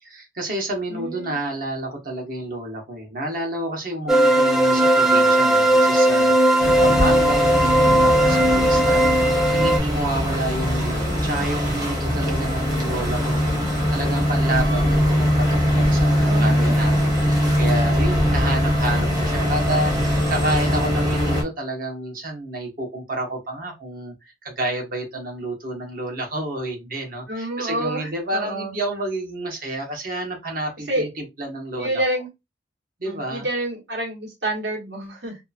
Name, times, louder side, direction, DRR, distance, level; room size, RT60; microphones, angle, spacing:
voice 1, 0.0-24.1 24.4-32.0 33.0-33.5, right 1 dB, 50° right, 1.1 m, -30 dB
voice 2, 0.9-1.4 10.1-10.5 16.2-16.7 18.3-18.7 27.3-28.7 30.9-31.1 31.8-32.3 33.0-35.4, right 1 dB, 70° right, 1.4 m, -29 dB
sound 1, 4.1-9.8, right 1 dB, 5° right, 0.6 m, -17 dB
sound 2, 6.6-21.4, equal, 20° right, 0.9 m, -21 dB
2.7 x 2.3 x 2.5 m
head